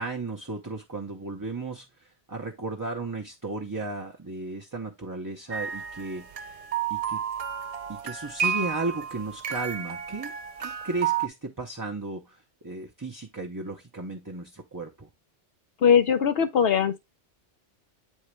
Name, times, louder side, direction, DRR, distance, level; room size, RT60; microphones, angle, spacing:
voice 1, 0.0-1.9 2.3-6.3 6.9-7.2 7.9-10.3 10.6-12.4 12.6-15.1, right 3 dB, 20° right, 0.6 m, -34 dB
sound 1, 5.5-11.3, right 8 dB, 70° right, 0.3 m, -31 dB
voice 2, 15.8-17.0, left 7 dB, 65° left, 0.8 m, -20 dB
8.5 x 3.7 x 3.1 m
omnidirectional pair, 1.2 m